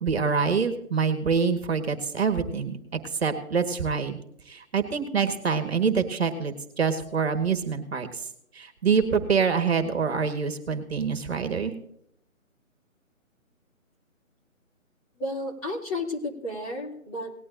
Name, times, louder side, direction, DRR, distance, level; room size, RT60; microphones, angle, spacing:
voice 1, 0.0-4.2 4.5-8.3 8.5-11.7, right 5 dB, 50° right, 9 dB, 1.5 m, -26 dB
voice 2, 15.2-17.3, left 1 dB, 25° left, -1 dB, 2.5 m, -32 dB
19.0 x 11.0 x 2.6 m, 0.71 s
figure-of-eight pair, 150°, 41 cm